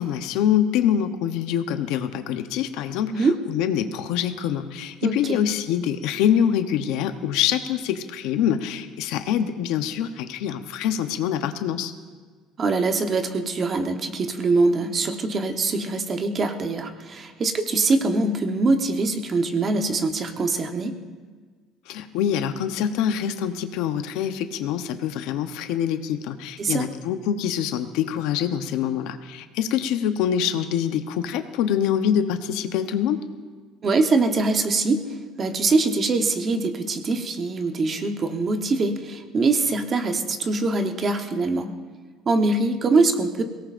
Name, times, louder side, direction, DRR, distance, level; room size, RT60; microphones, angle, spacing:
voice 1, 0.0-11.9 21.9-33.2, left 9 dB, 75° left, 8 dB, 0.8 m, -25 dB
voice 2, 5.0-5.4 12.6-21.0 26.6-26.9 33.8-35.0 35.4-41.7 42.2-43.4, right 3 dB, 25° right, 6 dB, 1.0 m, -23 dB
22.5 x 18.0 x 2.5 m, 1.5 s
cardioid pair, 160°, 0 cm